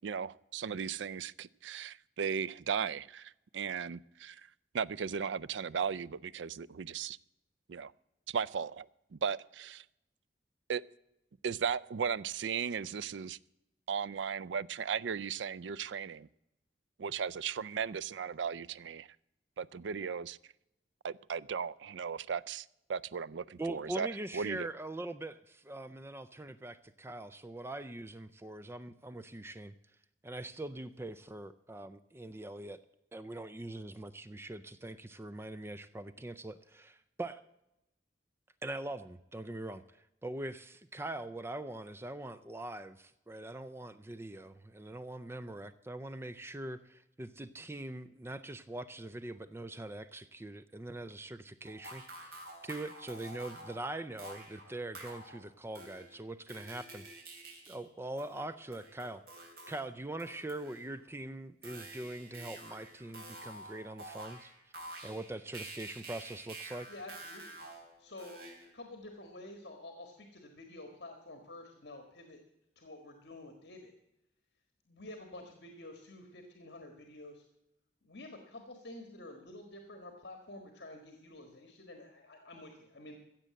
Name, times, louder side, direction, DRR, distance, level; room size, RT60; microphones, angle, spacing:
voice 1, 0.0-4.5 4.7-7.2 7.7-7.9 8.3-9.8 10.7-10.8 11.4-13.4 13.9-16.3 17.0-19.1 19.6-20.4 21.0-24.1 24.3-24.7, right 6 dB, 85° right, 20 dB, 0.4 m, -36 dB
voice 2, 23.6-29.7 30.2-32.8 33.1-37.4 38.6-57.1 57.7-59.2 59.7-64.5 65.0-66.9, right 1 dB, 15° right, 13 dB, 0.4 m, -42 dB
sound 1, 51.6-55.5 55.8-57.8 58.2-59.9 60.2-61.1 61.6-68.7, right 2 dB, 55° right, 3.2 m, -49 dB
voice 3, 66.9-67.6 68.0-68.4 68.7-72.4 72.7-73.9 74.9-77.4 78.0-83.2, left 2 dB, 65° left, 5 dB, 1.7 m, -49 dB
15.5 x 7.6 x 7.6 m, 0.87 s
head